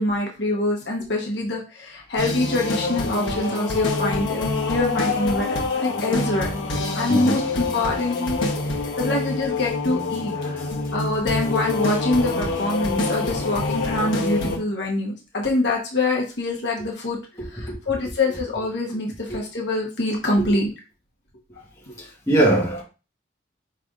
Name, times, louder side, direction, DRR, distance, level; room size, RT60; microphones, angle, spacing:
voice 1, 0.0-6.5 6.9-8.4 8.7-10.3 10.9-17.2 17.5-20.7, left 2 dB, 65° left, 1.1 m, -25 dB
sound 1, 2.2-14.6, left 3 dB, 90° left, 1.0 m, -26 dB
voice 2, 10.3-10.7 13.1-13.2 17.4-17.8 19.3-19.4 20.4-20.6 22.0-22.8, right 1 dB, 15° left, 1.3 m, -23 dB
5.1 x 3.3 x 2.4 m
head